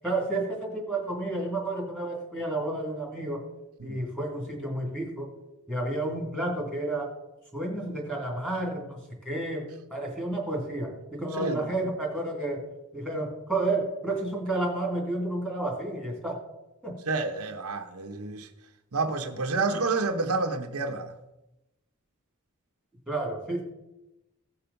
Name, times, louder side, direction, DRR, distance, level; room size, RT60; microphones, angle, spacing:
voice 1, 0.0-3.5 3.8-5.3 5.7-7.1 7.5-12.7 12.9-16.4 16.8-17.0 23.1-23.6, right 2 dB, 5° left, 2.8 m, -31 dB
voice 2, 17.1-18.5 18.9-21.1, right 3 dB, 80° right, 0.9 m, -29 dB
16.5 x 5.8 x 5.3 m
head